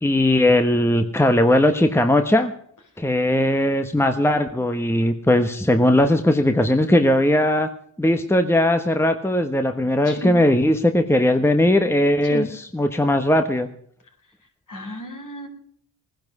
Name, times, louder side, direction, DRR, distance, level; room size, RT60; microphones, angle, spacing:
voice 1, 0.0-2.5 3.0-7.7 8.0-13.7, left 1 dB, 5° left, 7 dB, 1.2 m, -19 dB
voice 2, 14.7-15.5, left 1 dB, 55° left, 3 dB, 4.5 m, -32 dB
19.0 x 10.5 x 6.1 m, 0.65 s
cardioid pair, 75°, 38 cm